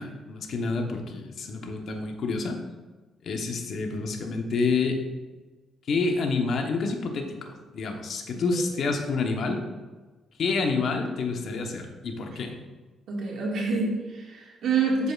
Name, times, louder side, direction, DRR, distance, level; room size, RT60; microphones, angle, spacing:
voice 1, 0.0-2.6 3.2-5.0 5.9-9.6 10.4-12.6, left 4 dB, 60° left, 3 dB, 1.0 m, -28 dB
voice 2, 13.1-15.1, right 4 dB, 65° right, -3 dB, 2.0 m, -27 dB
8.3 x 6.8 x 2.4 m, 1.3 s
cardioid pair, 90°, 0 cm